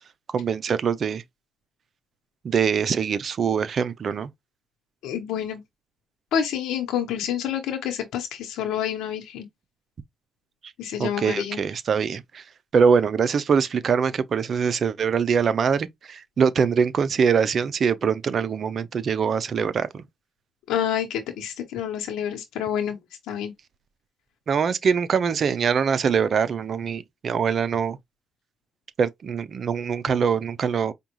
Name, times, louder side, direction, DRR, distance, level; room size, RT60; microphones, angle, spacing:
voice 1, 0.3-1.2 2.4-4.3 11.0-12.4 12.7-20.0 24.5-28.0 29.0-30.9, right 6 dB, 50° right, 0.6 m, -23 dB
voice 2, 5.0-5.6 6.3-9.5 10.8-11.6 20.7-23.0 23.3-23.5, left 9 dB, 85° left, 1.0 m, -28 dB
5.1 x 2.4 x 3.0 m
cardioid pair, 90°, 0 cm